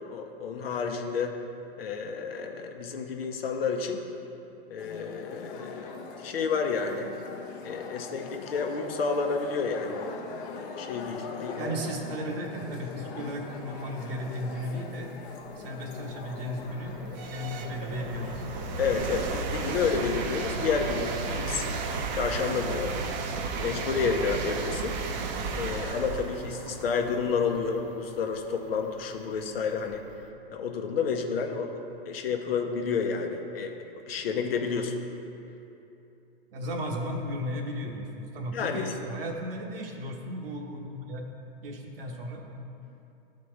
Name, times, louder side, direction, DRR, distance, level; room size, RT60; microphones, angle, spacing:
voice 1, 0.1-1.4 1.8-4.0 4.7-7.1 7.6-10.2 10.5-11.7 18.8-21.7 22.1-23.0 23.6-25.0 25.5-30.0 30.5-33.8 34.1-35.0 38.5-38.9, left 5 dB, 75° left, 4 dB, 0.8 m, -30 dB
sound 1, 4.8-22.3, left 5 dB, 40° left, 0.8 m, -42 dB
voice 2, 11.5-15.1 15.6-18.5 36.5-41.3 41.6-42.5, equal, 65° right, 1 dB, 1.2 m, -35 dB
sound 2, 14.8-14.9 15.5-30.2, right 4 dB, 45° right, 0.7 m, -34 dB
12.0 x 4.2 x 3.2 m, 2.8 s
hypercardioid pair, 120°, 30 cm